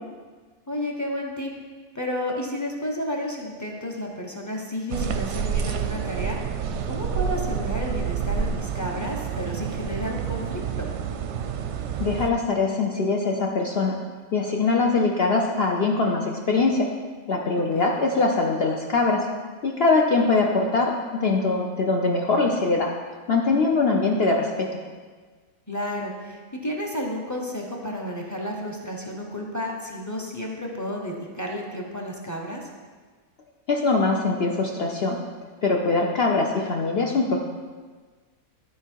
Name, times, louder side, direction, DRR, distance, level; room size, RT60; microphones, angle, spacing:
voice 1, 0.7-1.5 1.9-6.4 6.9-10.9 17.5-18.0 25.7-32.7, left 1 dB, 15° left, 0 dB, 0.9 m, -32 dB
sound 1, 4.9-12.3, right 7 dB, 65° right, 0.8 m, -28 dB
voice 2, 12.0-14.0 14.3-16.9 17.3-19.3 19.6-22.9 23.3-24.8 33.7-35.2 35.6-37.4, left 3 dB, 55° left, 0 dB, 0.8 m, -22 dB
12.5 x 4.5 x 4.6 m, 1.4 s
omnidirectional pair, 1.5 m